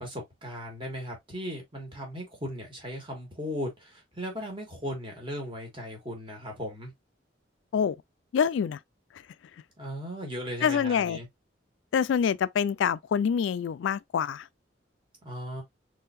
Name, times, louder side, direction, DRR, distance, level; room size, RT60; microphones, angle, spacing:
voice 1, 0.0-6.9 9.8-11.3 15.2-15.6, equal, 25° right, 1.5 m, -37 dB
voice 2, 8.3-8.8 10.6-11.2 11.9-14.4, left 7 dB, 75° left, 0.3 m, -26 dB
3.7 x 3.3 x 2.6 m
head